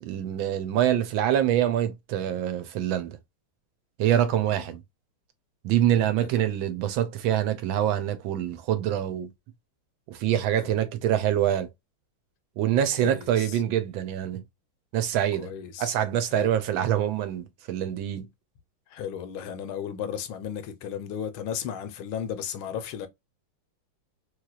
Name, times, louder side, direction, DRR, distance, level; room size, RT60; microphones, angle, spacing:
voice 1, 0.0-3.2 4.0-4.8 5.6-9.3 10.1-11.7 12.6-14.4 14.9-15.5 15.8-18.3, right 11 dB, 75° right, 1.2 m, -25 dB
voice 2, 5.9-6.3 10.6-10.7 13.0-13.6 15.4-15.9 16.3-16.5 18.9-23.1, left 8 dB, 75° left, 1.3 m, -35 dB
3.2 x 3.2 x 2.2 m
omnidirectional pair, 2.4 m